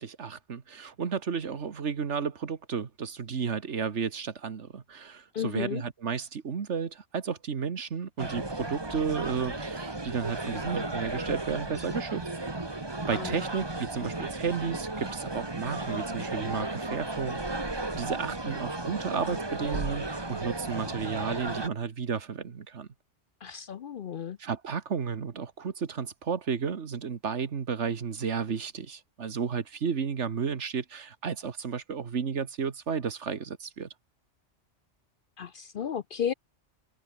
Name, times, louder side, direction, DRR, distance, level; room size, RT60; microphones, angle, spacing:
voice 1, 0.0-12.2 13.1-17.4 18.0-22.9 24.4-33.9, right 6 dB, 75° right, 1.8 m, -33 dB
voice 2, 5.3-5.8 13.1-13.4 23.4-24.4 35.4-36.3, left 8 dB, 55° left, 0.7 m, -33 dB
sound 1, 8.2-21.7, right 2 dB, 20° right, 1.7 m, -34 dB
omnidirectional pair, 1.2 m